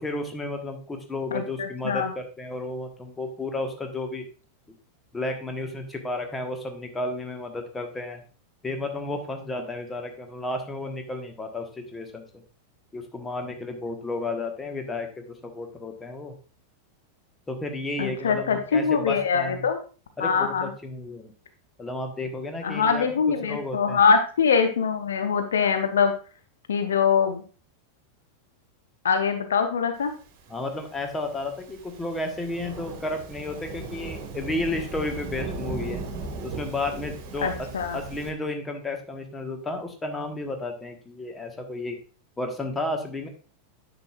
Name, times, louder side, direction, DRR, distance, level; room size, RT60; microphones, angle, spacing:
voice 1, 0.0-4.2 5.1-8.2 8.6-12.2 12.9-16.3 17.5-19.7 20.2-21.3 21.8-24.0 30.5-36.0 36.4-37.5 37.9-42.0 42.4-43.3, left 2 dB, 15° left, 4 dB, 1.3 m, -32 dB
voice 2, 1.3-2.1 18.0-19.8 20.2-20.7 22.6-26.1 26.7-27.4 29.0-30.1 37.4-38.0, left 6 dB, 65° left, 7 dB, 0.7 m, -23 dB
Thunderstorm / Rain, 30.6-38.3, right 3 dB, 45° right, 1.7 m, -37 dB
9.6 x 6.1 x 2.4 m, 0.38 s
figure-of-eight pair, 90°, 0 cm